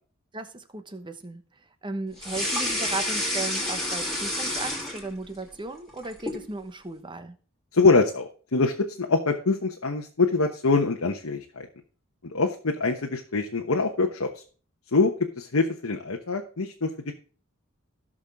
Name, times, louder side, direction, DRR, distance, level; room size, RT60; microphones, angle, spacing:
voice 1, 0.3-1.4 1.8-7.3, right 2 dB, 20° right, 9 dB, 1.1 m, -36 dB
sound 1, 2.2-5.4 5.8-6.5, left 1 dB, ahead, 3.0 m, -29 dB
voice 2, 7.7-11.7 12.3-14.4 14.9-17.1, left 3 dB, 85° left, 2 dB, 1.1 m, -24 dB
16.0 x 6.3 x 3.6 m, 0.40 s
head